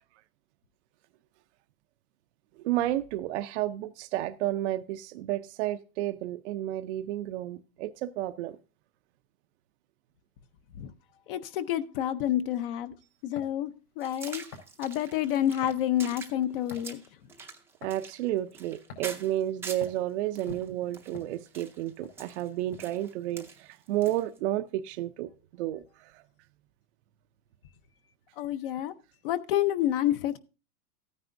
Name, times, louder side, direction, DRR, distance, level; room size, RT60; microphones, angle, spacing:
voice 1, 2.6-8.6 17.8-26.2, right 14 dB, 50° right, 0.6 m, -31 dB
voice 2, 11.3-12.9 13.2-14.4 14.8-17.0 28.4-28.9 29.2-30.4, left 12 dB, 40° left, 0.6 m, -28 dB
sound 1, 13.3-13.6 14.5-14.7 15.6-15.8 16.7-17.0 17.8-18.0 18.9-19.2 19.8-20.0 20.5-21.7 22.0-22.2 22.7-23.0, left 5 dB, 85° left, 4.6 m, -45 dB
sound 2, 14.0-20.0 20.4-24.4, right 4 dB, 5° right, 0.5 m, -45 dB
13.5 x 9.5 x 2.6 m
supercardioid pair, 155°, 45 cm